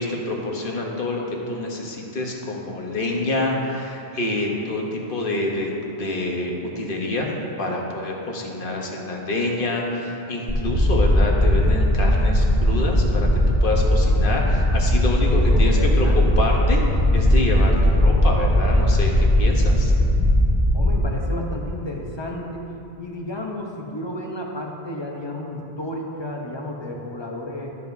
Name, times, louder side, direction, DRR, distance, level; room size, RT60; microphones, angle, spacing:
voice 1, 0.0-7.3 7.6-16.1 16.4-16.8 17.1-19.9, left 2 dB, 55° left, 0 dB, 1.2 m, -27 dB
sound 1, 10.5-21.0, left 1 dB, 10° right, 1.2 m, -18 dB
voice 2, 15.5-16.4 20.7-22.7 23.0-27.8, left 1 dB, 30° left, 0 dB, 0.8 m, -32 dB
12.5 x 6.9 x 2.7 m, 2.8 s
omnidirectional pair, 1.1 m